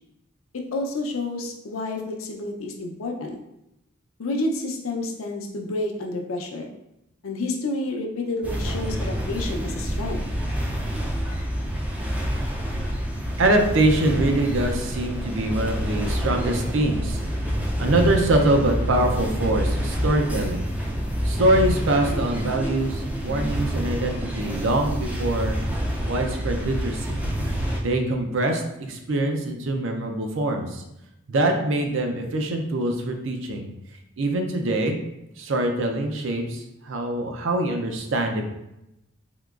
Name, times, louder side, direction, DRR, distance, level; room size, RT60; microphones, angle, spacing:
voice 1, 0.5-3.4 4.2-6.7 7.2-10.2, left 2 dB, 75° left, 2 dB, 0.5 m, -29 dB
sound 1, 8.4-27.8, equal, 5° right, 0.3 m, -27 dB
voice 2, 13.4-17.2 17.8-20.6 21.2-25.6 26.0-27.2 27.8-28.6 28.9-30.8 31.3-33.7 34.2-35.0 35.4-38.5, right 1 dB, 65° right, 4 dB, 0.5 m, -24 dB
3.7 x 2.9 x 2.3 m, 0.87 s
head